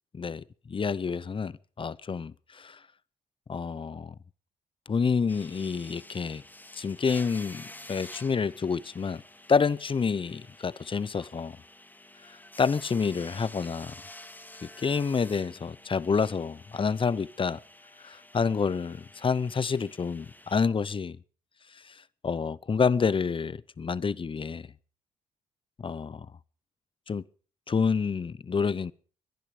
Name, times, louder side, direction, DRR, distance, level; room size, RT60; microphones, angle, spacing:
voice 1, 0.2-2.8 3.5-4.1 4.9-6.4 6.7-9.2 9.5-11.6 12.6-13.9 14.6-17.6 18.0-21.2 21.8-22.0 22.2-24.7 25.8-26.3 27.1-27.2 27.7-28.9, left 5 dB, 35° left, 0.7 m, -28 dB
sound 1, 5.3-20.6, left 1 dB, 10° left, 2.2 m, -49 dB
21.0 x 11.0 x 5.2 m
supercardioid pair, 60°, 15 cm